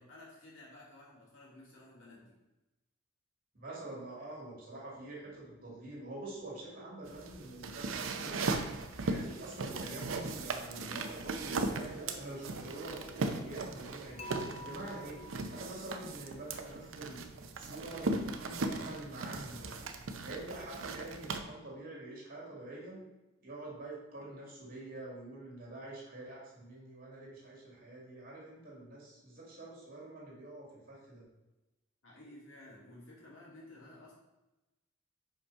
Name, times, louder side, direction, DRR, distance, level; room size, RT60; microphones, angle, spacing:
voice 1, 0.0-2.3 32.0-34.1, left 1 dB, 80° left, -5 dB, 2.7 m, -54 dB
voice 2, 3.5-13.0 13.4-14.3 14.6-15.2 15.5-19.8 20.2-23.0 23.4-31.3, right 2 dB, 45° right, -4 dB, 2.5 m, -46 dB
sound 1, 6.3-17.3, equal, 5° right, 0.9 m, -58 dB
sound 2, 7.0-21.4, right 3 dB, 85° right, 0.7 m, -38 dB
Dishes pots and pans / Chink clink, 14.2-16.3, equal, 30° left, 0.7 m, -49 dB
5.4 x 5.1 x 5.5 m, 1.0 s
head